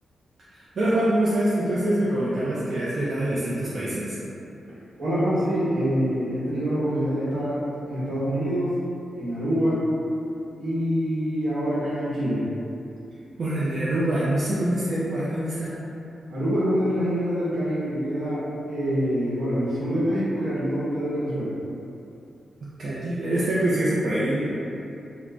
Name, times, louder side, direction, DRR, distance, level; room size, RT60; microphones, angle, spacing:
voice 1, 0.5-4.2 13.4-15.7 22.8-24.5, right 1 dB, 45° right, -9 dB, 0.4 m, -25 dB
voice 2, 5.0-8.7 9.1-9.8 10.6-12.5 16.3-21.5, equal, 70° right, -9 dB, 0.9 m, -25 dB
2.4 x 2.0 x 3.3 m, 2.7 s
wide cardioid pair, 120°, 0 cm